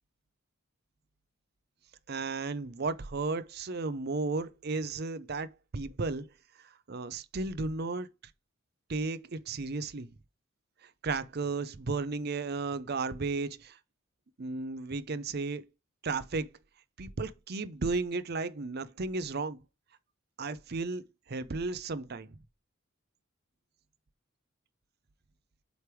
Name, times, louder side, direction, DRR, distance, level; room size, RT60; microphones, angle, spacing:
voice 1, 2.1-6.3 6.9-8.1 8.9-10.1 11.0-13.8 14.4-15.7 16.0-16.5 17.0-19.6 20.4-22.3, right 3 dB, 50° right, 0.6 m, -34 dB
7.9 x 3.4 x 4.6 m
head